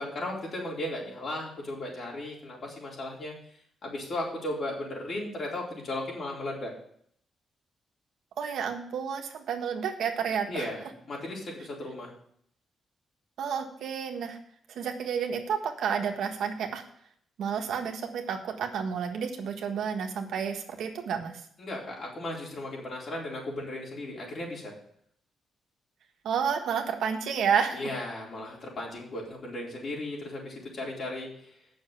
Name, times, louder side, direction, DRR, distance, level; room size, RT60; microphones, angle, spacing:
voice 1, 0.0-3.3 3.8-6.7 10.5-12.1 21.6-24.7 27.7-31.3, left 1 dB, 50° left, -3 dB, 4.1 m, -36 dB
voice 2, 8.4-10.7 13.4-14.4 14.7-16.8 17.4-21.3 26.2-27.9, right 7 dB, 85° right, 4 dB, 1.5 m, -30 dB
8.2 x 6.4 x 8.1 m, 0.65 s
cardioid pair, 120°, 0 cm